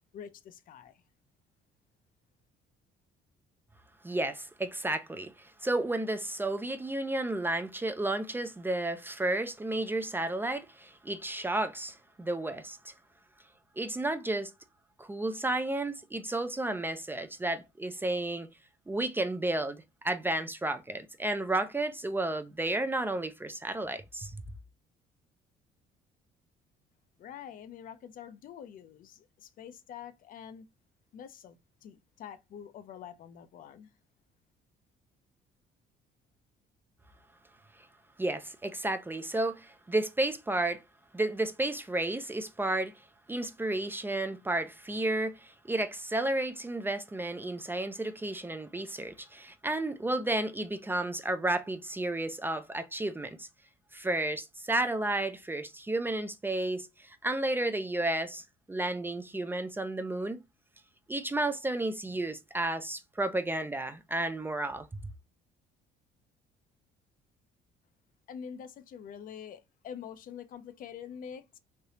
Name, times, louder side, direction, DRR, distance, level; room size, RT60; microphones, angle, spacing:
voice 1, 0.1-0.9 27.2-30.6 31.1-31.6 31.8-33.9 68.3-71.6, left 8 dB, 55° left, 0.5 m, -46 dB
voice 2, 4.0-12.9 13.8-14.5 15.0-18.5 18.9-24.4 38.2-40.8 41.1-42.9 43.3-53.5 53.9-60.4 61.1-64.9, right 2 dB, 10° right, 0.4 m, -32 dB
3.3 x 2.7 x 2.8 m
cardioid pair, 110°, 17 cm